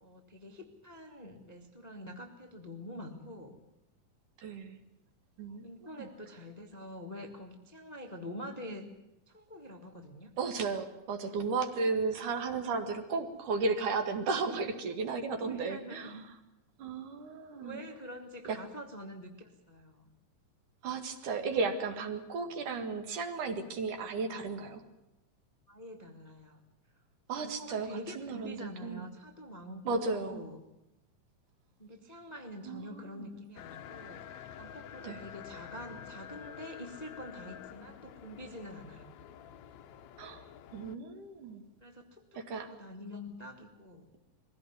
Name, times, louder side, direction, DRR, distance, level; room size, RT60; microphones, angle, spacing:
voice 1, 0.0-3.6 5.6-8.9 9.3-10.3 15.4-16.2 17.6-20.1 25.7-26.6 27.3-30.6 31.8-39.1 41.8-44.1, equal, 20° left, 4 dB, 1.0 m, -46 dB
voice 2, 4.4-4.8 5.4-5.7 6.0-6.1 10.4-16.1 16.8-17.8 18.5-18.6 20.8-24.8 27.3-29.1 29.8-30.5 32.6-33.3 35.0-35.2 40.2-40.4 40.7-41.6 42.3-42.7, right 4 dB, 65° right, 6 dB, 3.4 m, -34 dB
sound 1, 33.6-41.0, left 9 dB, 70° left, 1.8 m, -48 dB
22.5 x 16.0 x 9.6 m, 0.91 s
omnidirectional pair, 4.1 m